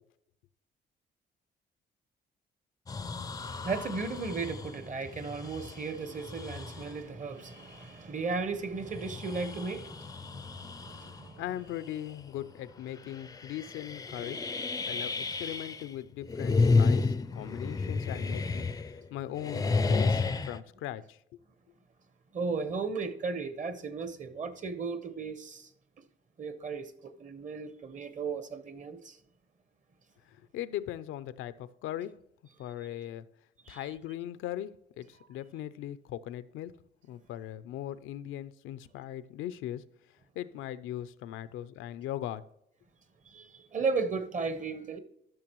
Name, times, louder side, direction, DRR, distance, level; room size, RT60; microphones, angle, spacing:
sound 1, 2.9-7.0 7.6-7.7 8.7-11.3 11.7-12.1 12.4-12.5 13.1-15.9 16.2-19.1 19.3-20.6, left 4 dB, 20° left, 0.4 m, -31 dB
voice 1, 3.4-11.4 14.8-15.2 22.3-25.7 26.4-29.2 33.6-33.9 43.2-45.0, right 4 dB, 40° right, 1.0 m, -35 dB
voice 2, 10.9-14.4 14.9-21.4 30.3-32.1 32.6-33.3 33.7-36.7 37.1-39.8 40.1-42.4, left 12 dB, 85° left, 0.5 m, -39 dB
12.5 x 6.1 x 3.0 m
cardioid pair, 90°, 20 cm